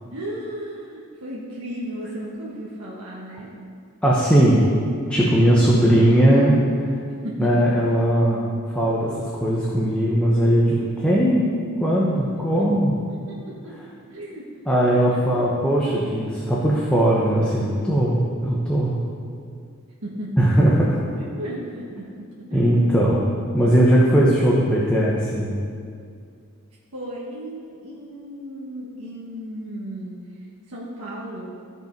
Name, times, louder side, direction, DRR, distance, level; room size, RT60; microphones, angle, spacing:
voice 1, 0.1-3.5 7.2-7.7 12.5-12.7 13.3-13.8 14.1-15.2 20.0-20.5 21.2-22.6 26.9-30.2 30.7-31.5, equal, 90° right, -6 dB, 1.4 m, -35 dB
voice 2, 4.0-4.6 5.1-7.0 7.4-8.5 8.7-11.4 11.8-12.9 14.7-19.0 20.4-21.0 22.5-23.3 23.5-25.6, right 1 dB, 5° left, -6 dB, 1.0 m, -19 dB
14.0 x 5.4 x 5.2 m, 2.2 s
head